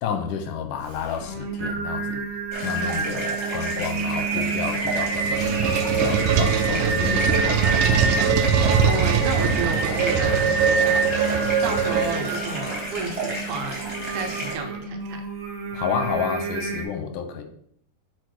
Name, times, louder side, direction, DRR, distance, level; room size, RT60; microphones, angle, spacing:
voice 1, 0.0-2.2 2.6-7.8 15.7-17.4, left 7 dB, 80° left, 6 dB, 2.4 m, -30 dB
Singing, 0.9-16.8, right 4 dB, 55° right, 1.4 m, -29 dB
sound 1, 2.5-14.5, right 1 dB, 5° right, 2.6 m, -33 dB
sound 2, 4.7-12.5, right 6 dB, 90° right, 2.3 m, -22 dB
voice 2, 8.8-13.8 14.1-15.2, right 4 dB, 75° right, 4 dB, 2.2 m, -31 dB
6.8 x 4.4 x 4.7 m, 0.65 s
omnidirectional pair, 3.7 m